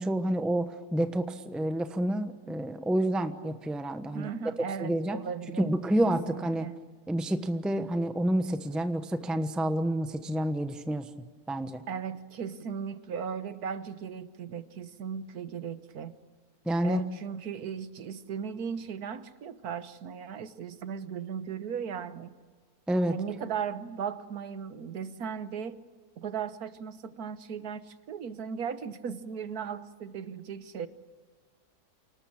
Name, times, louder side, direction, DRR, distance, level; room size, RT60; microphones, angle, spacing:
voice 1, 0.0-4.3 4.8-5.2 5.6-6.7 7.1-11.1 11.5-11.8 16.7-17.0 22.9-23.2, right 1 dB, ahead, 9 dB, 0.9 m, -29 dB
voice 2, 4.1-5.7 6.0-6.8 11.9-16.1 16.8-22.3 23.1-25.8 26.2-30.9, right 7 dB, 75° right, 12 dB, 1.6 m, -37 dB
28.5 x 19.0 x 8.7 m, 1.5 s
omnidirectional pair, 1.6 m